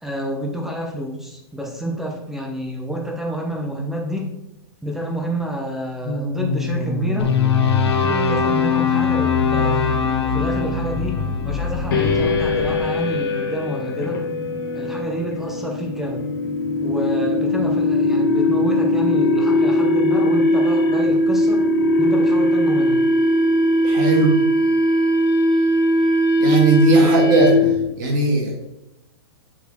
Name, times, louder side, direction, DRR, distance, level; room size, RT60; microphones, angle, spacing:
voice 1, 0.0-4.3 4.8-7.3 8.0-14.2 14.7-16.3 16.8-21.6 22.0-23.0 27.0-27.1, equal, ahead, 0 dB, 0.7 m, -29 dB
sound 1, 6.0-12.8, left 2 dB, 30° left, 1.2 m, -26 dB
sound 2, 7.2-13.4, left 8 dB, 80° left, 1.0 m, -23 dB
sound 3, 11.9-27.8, left 1 dB, 50° left, 1.5 m, -19 dB
voice 2, 23.8-24.3 26.4-27.5 28.0-28.5, right 3 dB, 45° right, -1 dB, 2.2 m, -17 dB
6.9 x 4.4 x 3.5 m, 0.88 s
hypercardioid pair, 160°, 14 cm